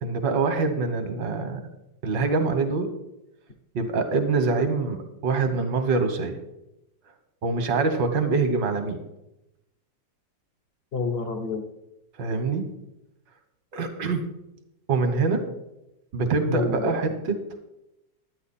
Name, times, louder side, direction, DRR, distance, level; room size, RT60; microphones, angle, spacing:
voice 1, 0.0-1.6 2.0-2.9 3.7-6.4 7.4-9.0 12.2-12.6 13.7-14.2 14.9-15.5 16.1-17.4, right 4 dB, 75° right, 7 dB, 1.9 m, -24 dB
voice 2, 10.9-11.6 16.5-17.2, left 4 dB, 45° left, 8 dB, 0.8 m, -28 dB
12.0 x 9.3 x 4.2 m, 0.91 s
omnidirectional pair, 2.0 m